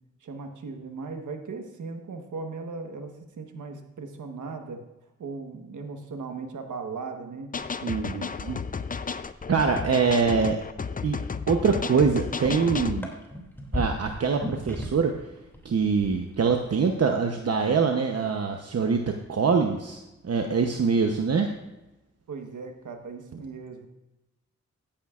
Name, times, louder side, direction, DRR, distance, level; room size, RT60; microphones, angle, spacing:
voice 1, 0.2-4.8 5.2-7.5 22.3-23.9, right 4 dB, 90° right, 4 dB, 1.3 m, -37 dB
sound 1, 7.5-13.0, left 5 dB, 30° left, 0.5 m, -33 dB
voice 2, 7.8-8.6 9.5-10.6 11.0-11.2 11.5-13.1 13.7-15.1 15.6-20.0 20.2-21.5, right 5 dB, 55° right, 4 dB, 0.9 m, -24 dB
sound 2, 12.3-15.2 15.4-16.5 16.8-17.1, left 1 dB, 5° left, 2.6 m, -35 dB
14.0 x 10.0 x 2.5 m, 0.99 s
cardioid pair, 70°, 29 cm